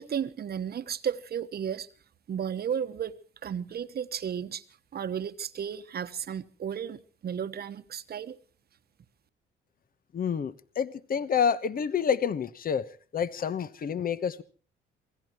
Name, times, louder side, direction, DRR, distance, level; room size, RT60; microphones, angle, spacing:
voice 1, 0.0-1.9 2.3-4.6 4.9-8.4, right 8 dB, 50° right, 1.1 m, -34 dB
voice 2, 10.1-12.8 13.1-14.4, left 7 dB, 45° left, 1.1 m, -28 dB
26.5 x 18.0 x 3.0 m
cardioid pair, 90°, 20 cm